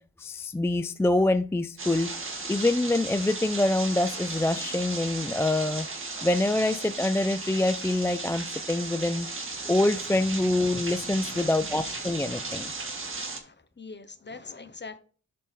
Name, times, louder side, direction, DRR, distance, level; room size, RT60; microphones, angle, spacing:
voice 1, 0.2-2.1 2.5-5.9 6.2-9.3 9.7-12.7, left 2 dB, 10° left, 0.3 m, -25 dB
sound 1, 1.8-13.4, right 3 dB, 45° right, 1.8 m, -36 dB
voice 2, 13.3-15.0, left 4 dB, 35° left, 1.0 m, -43 dB
10.5 x 4.2 x 3.6 m
cardioid pair, 75°, 30 cm